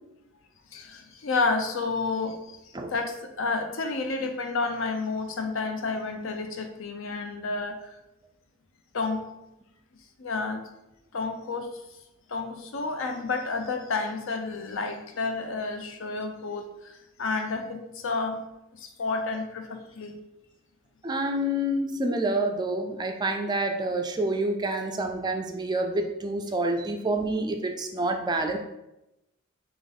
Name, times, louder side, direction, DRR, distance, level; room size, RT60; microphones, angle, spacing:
voice 1, 0.7-2.6 2.9-7.9 8.9-9.3 10.2-10.6 11.1-11.7 12.3-18.5 18.8-20.1, left 3 dB, 65° left, 5 dB, 0.6 m, -30 dB
voice 2, 21.0-28.6, right 1 dB, 20° right, 4 dB, 0.3 m, -28 dB
3.9 x 3.0 x 3.6 m, 0.92 s
head